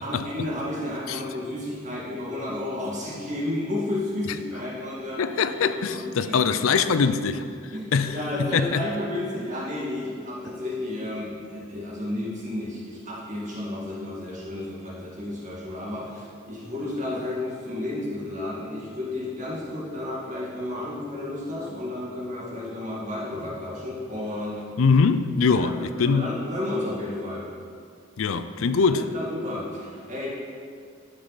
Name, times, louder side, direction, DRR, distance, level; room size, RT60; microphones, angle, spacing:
voice 1, 0.0-6.9 7.7-24.6 25.5-25.7 26.0-27.5 28.9-30.3, left 1 dB, 35° right, -6 dB, 2.1 m, -32 dB
voice 2, 5.2-7.4 7.9-8.8 24.8-26.3 28.2-29.1, left 5 dB, 80° left, 11 dB, 0.4 m, -22 dB
12.0 x 5.4 x 4.1 m, 2.2 s
head